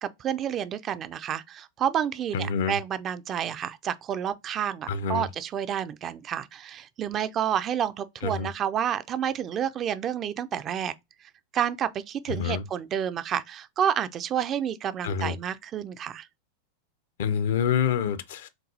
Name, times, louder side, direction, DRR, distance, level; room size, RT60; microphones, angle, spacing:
voice 1, 0.0-10.9 11.5-16.3, right 9 dB, 30° right, 0.3 m, -29 dB
voice 2, 2.3-2.7 4.9-5.3 8.2-8.5 12.3-12.6 15.0-15.3 17.2-18.5, left 7 dB, 55° left, 0.4 m, -27 dB
5.9 x 2.3 x 2.6 m
figure-of-eight pair, 90°, 0 cm